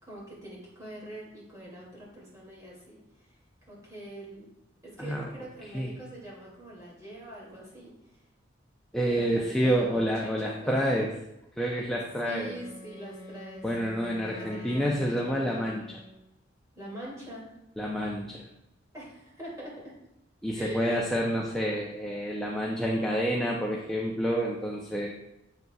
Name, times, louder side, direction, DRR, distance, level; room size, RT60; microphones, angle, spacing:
voice 1, 0.0-3.4 3.7-4.5 4.8-8.2 9.1-11.0 12.2-14.0 14.2-15.7 16.7-17.5 18.9-19.9 20.5-21.0, right 1 dB, 15° right, -5 dB, 2.4 m, -44 dB
voice 2, 8.9-11.1 11.6-12.5 13.6-16.0 17.8-18.4 20.4-25.1, equal, 5° left, -3 dB, 0.5 m, -28 dB
Wind instrument woodwind instrument, 12.3-16.3, left 1 dB, 35° left, 1.1 m, -46 dB
7.9 x 6.7 x 2.3 m, 0.89 s
head